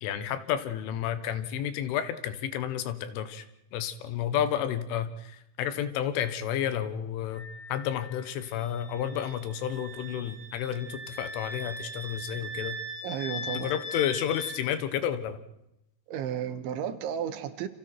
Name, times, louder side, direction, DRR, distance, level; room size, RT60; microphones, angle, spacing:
voice 1, 0.0-3.4 3.7-7.5 7.7-12.8 13.5-15.4, left 10 dB, 80° left, 11 dB, 3.8 m, -31 dB
Wind instrument woodwind instrument, 7.3-14.6, left 1 dB, 50° left, 7.6 m, -40 dB
voice 2, 13.0-13.7 16.1-17.7, right 9 dB, 75° right, 10 dB, 3.5 m, -33 dB
29.5 x 26.5 x 4.6 m, 0.86 s
omnidirectional pair, 5.6 m